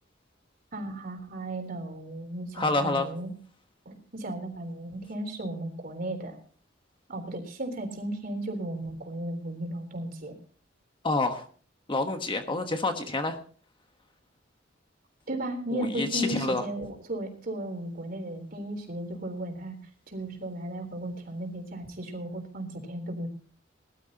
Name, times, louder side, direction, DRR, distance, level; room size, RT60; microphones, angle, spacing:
voice 1, 0.7-3.3 3.9-6.4 7.1-10.3 15.3-19.8 20.1-23.3, right 1 dB, 50° right, 4 dB, 3.6 m, -35 dB
voice 2, 2.5-3.1 11.0-11.4 11.9-13.4 15.7-16.6, left 2 dB, 25° left, 6 dB, 1.2 m, -28 dB
21.0 x 12.5 x 2.9 m, 0.43 s
head